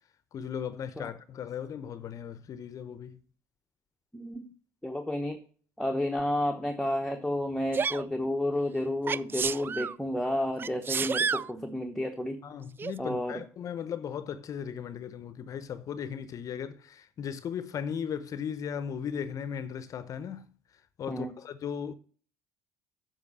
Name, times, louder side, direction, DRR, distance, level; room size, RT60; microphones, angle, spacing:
voice 1, 0.3-3.2 12.4-21.9, left 8 dB, 45° left, 0.7 m, -37 dB
voice 2, 4.1-4.5 4.8-5.4 5.8-12.4 13.0-13.4 21.1-21.3, left 1 dB, 5° left, 1.1 m, -31 dB
Sneeze, 7.7-8.0 9.1-9.9 10.6-11.5 12.8-12.9, right 6 dB, 25° right, 0.3 m, -30 dB
8.5 x 5.5 x 6.8 m
hypercardioid pair, 70°, 8 cm